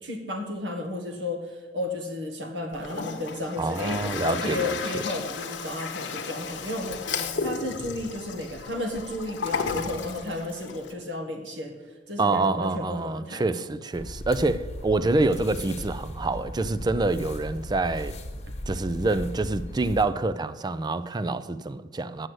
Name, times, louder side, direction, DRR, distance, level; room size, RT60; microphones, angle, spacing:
voice 1, 0.0-7.0 7.4-11.8 12.1-13.4, left 1 dB, 85° right, 1.6 m, -33 dB
Toilet flush, 2.7-10.9, left 5 dB, 75° left, 0.9 m, -33 dB
voice 2, 3.6-4.8 12.2-18.2 18.7-22.3, right 2 dB, 25° right, 0.4 m, -26 dB
sound 1, 13.9-20.0, left 1 dB, 40° left, 1.1 m, -37 dB
7.7 x 6.4 x 7.8 m
head